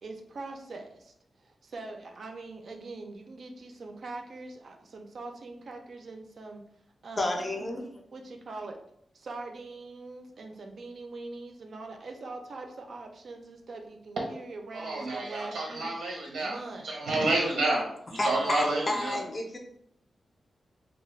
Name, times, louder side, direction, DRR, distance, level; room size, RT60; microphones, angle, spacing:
voice 1, 0.0-6.6 7.0-7.5 8.1-8.8 9.1-15.9 16.4-17.0, right 3 dB, 60° right, 4 dB, 0.4 m, -42 dB
voice 2, 7.2-7.8 18.2-19.6, left 1 dB, 30° left, 2 dB, 0.4 m, -30 dB
voice 3, 14.7-16.6 16.8-19.2, right 2 dB, 90° right, -1 dB, 0.7 m, -29 dB
2.3 x 2.0 x 3.1 m, 0.72 s
wide cardioid pair, 150°, 0 cm